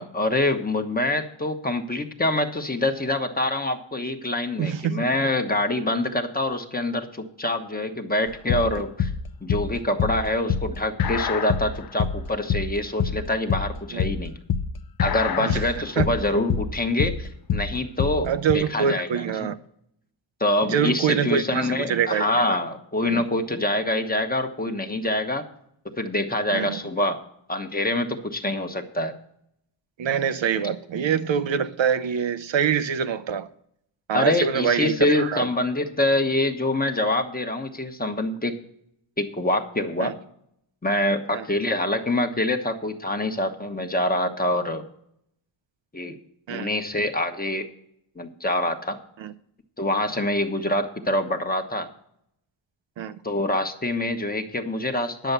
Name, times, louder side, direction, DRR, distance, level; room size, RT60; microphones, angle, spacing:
voice 1, 0.0-9.1 9.4-14.3 15.0-19.5 20.4-25.4 26.0-27.2 27.5-29.1 34.1-38.5 39.2-40.1 40.8-44.8 45.9-46.2 46.5-47.6 48.2-49.0 49.8-51.9 53.2-55.3, left 1 dB, 20° left, 1.1 m, -25 dB
voice 2, 4.6-5.0 13.9-14.0 15.4-16.1 18.2-19.6 20.6-22.3 23.0-23.2 26.5-26.8 30.0-33.5 34.1-35.5 40.0-40.1 41.3-41.4 46.5-46.7 49.2-49.3 53.0-53.1, right 7 dB, 70° right, 0.7 m, -25 dB
sound 1, 8.3-18.5, left 7 dB, 50° left, 0.6 m, -26 dB
10.5 x 7.0 x 6.8 m
wide cardioid pair, 110°, 47 cm